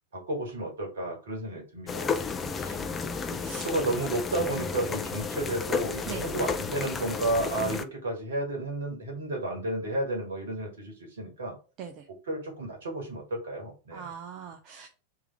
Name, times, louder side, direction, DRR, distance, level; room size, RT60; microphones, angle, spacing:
voice 1, 0.1-2.8 3.3-3.4 3.6-11.5 12.3-14.1, right 2 dB, 65° right, 0 dB, 1.8 m, -32 dB
sound 1, 1.9-7.8, left 5 dB, 20° left, 0.4 m, -32 dB
voice 2, 2.3-3.0 3.4-3.7 6.1-6.3 11.8-12.1 13.9-14.9, right 7 dB, 40° right, 4 dB, 0.6 m, -42 dB
3.3 x 3.3 x 4.6 m, 0.34 s
figure-of-eight pair, 90°, 0 cm